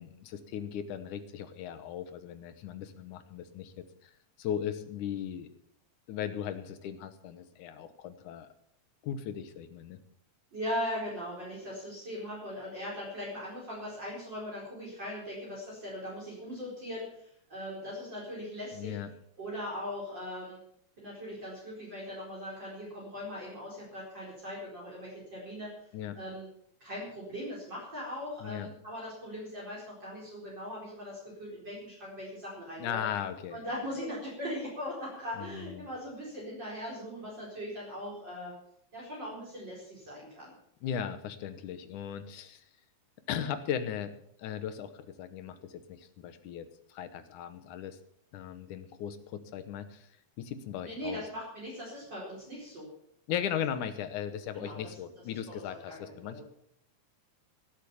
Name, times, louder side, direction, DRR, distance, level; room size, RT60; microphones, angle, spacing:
voice 1, 0.0-4.1 4.4-5.5 6.1-8.5 9.0-10.0 18.7-19.1 25.9-26.2 28.4-28.7 32.8-33.7 35.4-35.9 40.8-42.6 43.3-44.1 44.4-48.0 48.3-50.1 50.4-51.2 53.3-56.4, left 9 dB, 85° left, 11 dB, 2.6 m, -37 dB
voice 2, 10.5-19.0 19.4-20.6 21.0-25.7 26.2-26.5 26.8-33.0 33.5-38.5 38.9-40.5 50.8-52.9 54.5-54.9 55.3-56.4, left 1 dB, 35° right, -5 dB, 5.0 m, -40 dB
17.0 x 8.4 x 7.0 m, 0.69 s
omnidirectional pair, 3.4 m